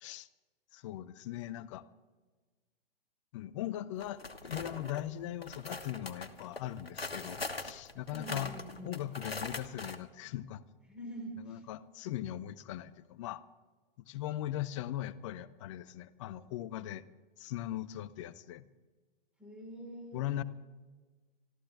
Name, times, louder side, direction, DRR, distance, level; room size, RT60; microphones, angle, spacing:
voice 1, 0.7-1.8 3.3-8.5 8.8-10.6 11.4-13.4 14.1-17.0 17.4-18.7 20.1-20.4, left 13 dB, 30° left, 16 dB, 0.7 m, -39 dB
sound 1, 4.0-5.0 5.4-10.0, left 3 dB, 85° left, 1.4 m, -42 dB
voice 2, 8.1-8.9 10.9-11.6 19.4-20.2, right 1 dB, 5° right, 0 dB, 4.5 m, -45 dB
25.5 x 14.0 x 3.5 m, 1.3 s
figure-of-eight pair, 115°, 29 cm